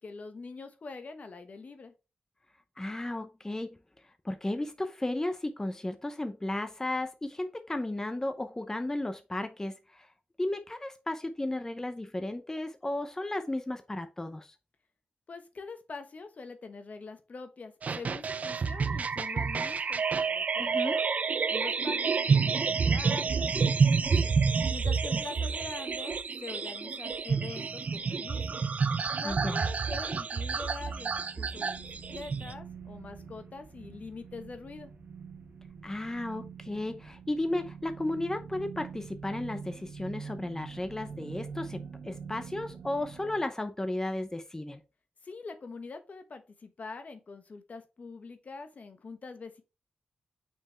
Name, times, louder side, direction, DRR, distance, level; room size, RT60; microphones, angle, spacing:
voice 1, 0.0-1.9 15.3-20.0 20.3-21.1 21.5-24.3 24.7-28.6 29.2-34.9 45.2-49.6, left 4 dB, 60° left, 8 dB, 1.1 m, -44 dB
voice 2, 2.8-3.8 4.2-10.1 10.4-14.5 20.6-21.0 29.2-29.7 35.8-44.8, left 1 dB, 20° left, 8 dB, 0.7 m, -34 dB
sound 1, 17.8-32.5, right 5 dB, 60° right, 0.5 m, -29 dB
sound 2, 30.7-43.4, right 6 dB, 80° right, 1.3 m, -45 dB
6.0 x 4.6 x 3.4 m, 0.29 s
cardioid pair, 75°, 3 cm